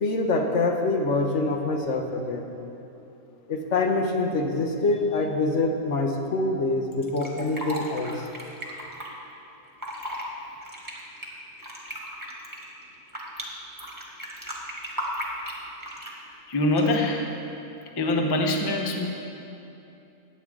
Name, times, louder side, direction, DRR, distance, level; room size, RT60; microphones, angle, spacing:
voice 1, 0.0-2.5 3.5-8.1, left 2 dB, 55° left, 2 dB, 1.2 m, -25 dB
Fill (with liquid), 7.0-9.1 9.7-10.2 10.6-13.4 13.8-16.2 16.7-17.1, equal, 15° right, 1.5 m, -35 dB
voice 2, 16.5-17.3 18.0-19.1, left 1 dB, 25° left, 2 dB, 0.6 m, -24 dB
16.0 x 9.4 x 3.7 m, 2.8 s
omnidirectional pair, 1.6 m